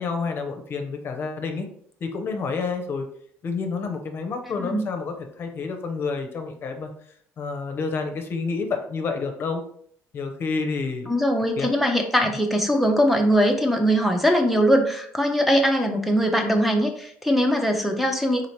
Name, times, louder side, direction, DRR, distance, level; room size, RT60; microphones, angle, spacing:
voice 1, 0.0-1.7 2.0-3.1 3.4-6.9 7.4-9.6 10.1-11.1 11.6-11.7, left 4 dB, 45° left, 5 dB, 0.6 m, -29 dB
voice 2, 11.1-18.5, equal, ahead, 4 dB, 0.5 m, -21 dB
4.0 x 2.8 x 3.2 m, 0.63 s
cardioid pair, 105°, 5 cm